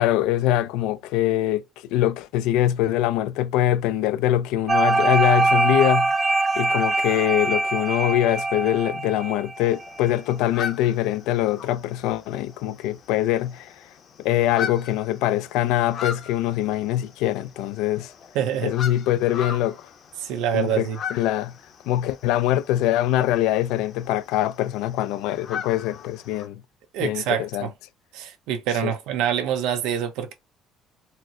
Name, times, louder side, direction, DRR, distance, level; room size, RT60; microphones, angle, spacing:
voice 1, 0.0-1.6 1.9-6.1 6.6-13.8 14.2-18.1 18.6-19.9 20.5-21.5 21.9-26.6 27.0-27.7 28.8-28.9, left 13 dB, 90° left, 0.3 m, -23 dB
sound 1, 4.7-9.8, right 3 dB, 25° right, 0.4 m, -23 dB
sound 2, 9.6-26.5, left 7 dB, 50° left, 0.7 m, -39 dB
voice 2, 18.3-18.7 20.2-21.0 26.9-27.7 28.1-30.3, right 9 dB, 90° right, 0.6 m, -25 dB
4.3 x 2.0 x 2.5 m
cardioid pair, 140°, 0 cm